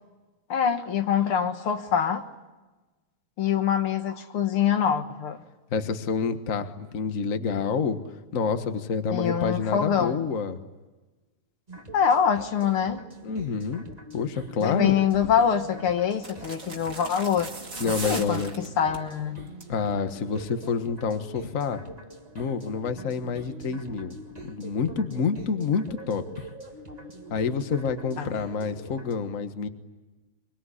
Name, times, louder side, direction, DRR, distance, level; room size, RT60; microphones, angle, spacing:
voice 1, 0.5-2.3 3.4-5.4 9.1-10.2 11.9-13.0 14.6-17.5 17.9-19.5 28.2-28.4, left 8 dB, 75° left, 2.3 m, -25 dB
voice 2, 5.7-8.0 8.3-10.6 13.2-13.8 14.1-15.0 17.8-18.5 19.7-21.8 22.3-24.2 24.4-26.5 27.3-29.7, left 5 dB, 40° left, 1.6 m, -28 dB
sound 1, 11.7-29.1, right 1 dB, 20° right, 1.7 m, -44 dB
sound 2, 15.1-15.4 16.2-19.1 19.5-19.8 20.1-20.2, right 3 dB, 40° right, 3.0 m, -38 dB
24.5 x 24.0 x 9.9 m
omnidirectional pair, 2.4 m